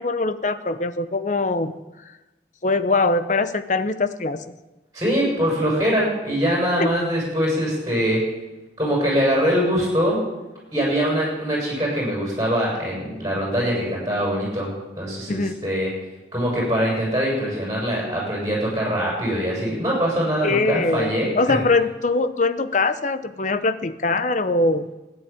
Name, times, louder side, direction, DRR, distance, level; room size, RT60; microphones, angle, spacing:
voice 1, 0.0-1.7 2.6-4.4 6.8-7.0 15.3-15.5 20.4-24.9, left 3 dB, 45° left, 12 dB, 0.8 m, -22 dB
voice 2, 4.9-8.2 8.8-10.2 10.7-14.7 15.0-15.9 16.3-21.6, equal, 20° right, -4 dB, 7.3 m, -23 dB
14.5 x 10.5 x 8.8 m, 1.1 s
head